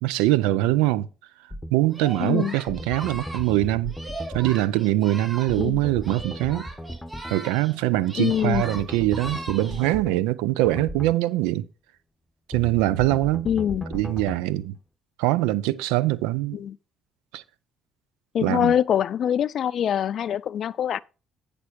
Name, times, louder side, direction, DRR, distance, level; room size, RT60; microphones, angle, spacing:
voice 1, 0.0-1.1 1.7-4.0 4.3-6.7 7.3-11.7 12.5-13.5 13.9-14.8 15.2-16.6 17.3-17.4 18.4-18.7, right 16 dB, 80° right, 0.4 m, -23 dB
sound 1, 1.5-1.7 2.7-4.6 5.5-7.4 8.3-10.2 10.6-11.2 12.5-14.4, equal, 10° left, 1.0 m, -36 dB
Singing, 1.9-5.7 6.0-9.9, right 2 dB, 15° right, 4.5 m, -39 dB
voice 2, 2.2-2.6 5.6-5.8 8.2-8.6 13.4-13.8 16.5-16.8 18.3-21.0, left 9 dB, 60° left, 0.4 m, -24 dB
9.6 x 5.2 x 4.5 m
hypercardioid pair, 55°, 0 cm